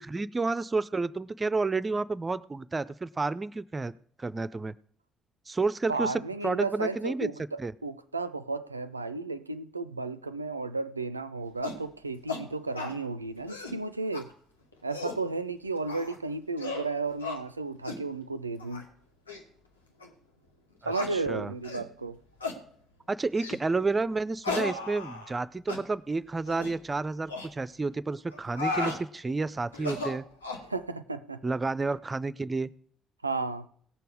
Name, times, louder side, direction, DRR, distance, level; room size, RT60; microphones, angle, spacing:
voice 1, 0.1-3.9 4.2-4.7 5.5-7.3 7.6-7.7 20.8-21.5 23.1-30.2 31.4-32.7, right 3 dB, 25° right, 0.5 m, -30 dB
voice 2, 5.9-14.3 14.8-18.9 20.8-22.2 30.7-31.4 33.2-33.7, right 3 dB, 90° right, 0.4 m, -33 dB
sound 1, 11.6-11.8 12.3-12.4 12.8-13.0 13.4-13.8 14.1-14.2 14.7-15.2 15.9-16.2 16.6-16.9 17.2-17.4 17.8-18.0 18.6-18.8 19.3-19.4 20.0-20.1 20.9-21.1 21.6-21.9 22.4-22.6 23.4-23.6 24.4-25.4 25.7-25.8 26.5-26.7 27.3-27.5 28.3-29.0 29.7-30.7, left 3 dB, 85° left, 1.2 m, -35 dB
17.5 x 6.8 x 4.9 m
figure-of-eight pair, 45°, 0 cm